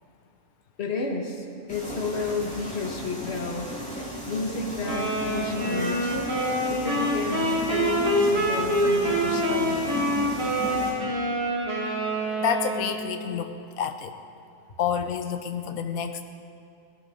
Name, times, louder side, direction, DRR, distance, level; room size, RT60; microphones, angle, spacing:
voice 1, 0.8-3.7 4.0-6.3 6.7-10.2, left 3 dB, 50° left, -1 dB, 2.0 m, -32 dB
sound 1, 1.7-10.9, equal, 5° left, 3.6 m, -35 dB
sound 2, 4.8-13.2, equal, 65° right, 3.6 m, -26 dB
voice 2, 12.4-14.1 14.8-16.2, left 8 dB, 85° left, 7 dB, 1.1 m, -29 dB
18.5 x 16.5 x 3.9 m, 2.6 s
omnidirectional pair, 1.4 m